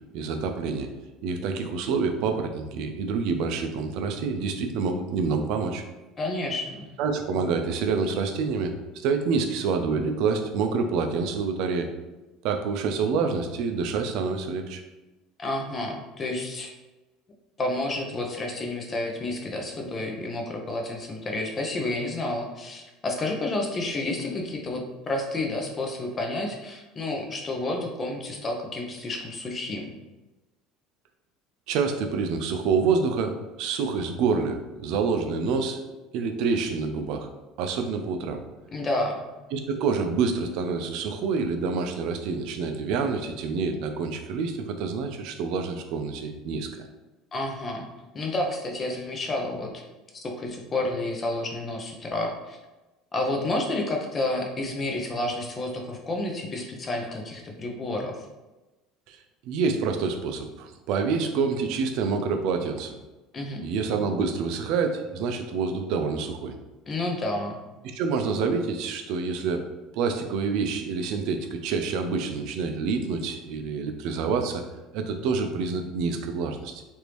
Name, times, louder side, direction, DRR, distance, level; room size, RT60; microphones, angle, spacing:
voice 1, 0.1-0.9 1.2-5.8 7.0-11.9 12.4-14.8 31.7-35.8 36.1-37.3 37.6-38.4 39.5-46.8 59.1-59.2 59.4-62.9 63.6-66.6 67.9-69.6 69.9-74.6 74.9-76.8, right 5 dB, 65° right, 6 dB, 0.4 m, -27 dB
voice 2, 6.2-6.9 15.4-16.7 17.6-29.9 38.7-39.2 47.3-47.9 48.1-49.8 50.2-52.6 53.1-58.3 63.3-63.6 66.9-67.6, left 2 dB, 25° left, 2 dB, 0.6 m, -30 dB
3.3 x 2.6 x 3.0 m, 1.1 s
cardioid pair, 135°, 0 cm